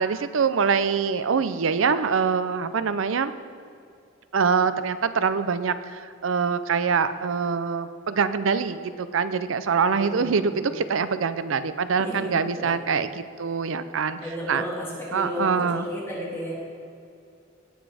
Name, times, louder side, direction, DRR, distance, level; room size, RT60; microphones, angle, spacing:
voice 1, 0.0-3.3 4.3-14.2 14.5-14.6 15.1-15.9, right 5 dB, 80° right, 12 dB, 0.5 m, -24 dB
voice 2, 9.9-10.6 12.0-12.7 14.2-16.5, equal, 15° left, -7 dB, 3.1 m, -33 dB
17.5 x 6.2 x 4.9 m, 2.4 s
head